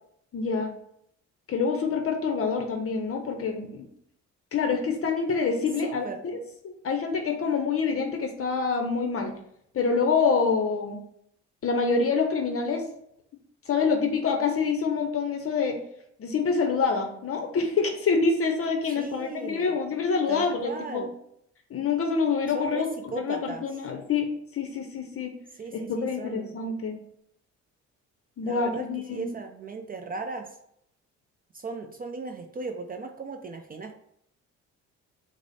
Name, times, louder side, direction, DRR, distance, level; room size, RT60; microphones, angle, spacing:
voice 1, 0.3-0.7 1.5-3.9 4.5-6.4 6.6-9.3 9.7-11.0 11.6-12.8 13.7-15.8 16.2-21.1 21.7-22.9 23.1-25.3 25.7-26.9 28.4-29.3, left 5 dB, 50° left, 4 dB, 0.6 m, -26 dB
voice 2, 5.8-6.2 19.0-19.7 20.3-21.1 22.5-23.6 25.6-26.5 28.4-30.5 31.5-34.0, right 4 dB, 30° right, 5 dB, 0.4 m, -37 dB
4.7 x 2.0 x 4.0 m, 0.73 s
cardioid pair, 90°, 30 cm